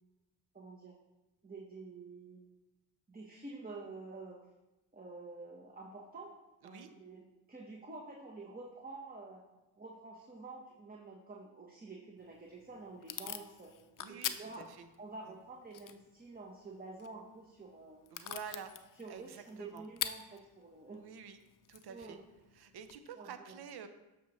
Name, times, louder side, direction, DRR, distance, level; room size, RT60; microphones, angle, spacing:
voice 1, 0.5-0.9 1.4-2.4 3.1-4.4 4.9-6.3 6.6-9.4 9.8-13.7 14.1-14.6 15.0-18.0 19.0-21.0 21.9-22.2 23.1-23.6, right 3 dB, 20° right, -1 dB, 1.1 m, -49 dB
Packing tape duct tape / Tearing, 12.2-23.0, left 10 dB, 50° left, 0.6 m, -46 dB
voice 2, 14.0-14.9 18.1-18.7 19.1-19.8 21.0-21.4 21.7-22.2 22.5-23.9, right 7 dB, 60° right, 10 dB, 0.8 m, -48 dB
7.1 x 6.0 x 3.1 m, 1.0 s
supercardioid pair, 55°, 43 cm